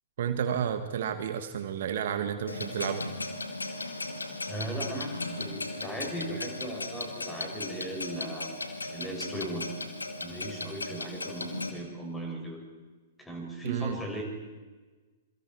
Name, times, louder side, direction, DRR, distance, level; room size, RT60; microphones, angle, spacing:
voice 1, 0.2-3.1 13.6-14.0, right 8 dB, 60° right, 8 dB, 1.5 m, -31 dB
Clock, 2.5-11.7, left 2 dB, 85° left, 2.3 m, -37 dB
voice 2, 4.5-9.7 10.2-12.6 13.2-14.2, right 1 dB, 10° left, 0 dB, 6.6 m, -38 dB
27.0 x 24.5 x 4.7 m, 1.3 s
figure-of-eight pair, 110°, 0 cm